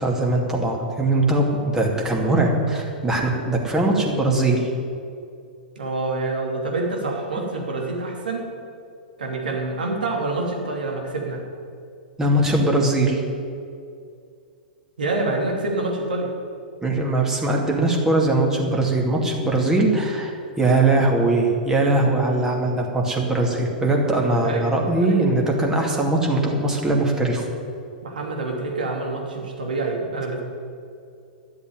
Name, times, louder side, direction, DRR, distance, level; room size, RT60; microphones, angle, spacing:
voice 1, 0.0-1.5 1.7-4.7 12.2-13.2 16.8-27.4, right 2 dB, 10° right, -1 dB, 2.5 m, -21 dB
voice 2, 5.8-8.5 9.2-11.4 15.0-16.3 24.2-24.6 25.0-25.1 28.0-30.4, right 2 dB, 75° right, 0 dB, 2.8 m, -27 dB
12.0 x 7.9 x 9.4 m, 2.4 s
figure-of-eight pair, 105°, 5 cm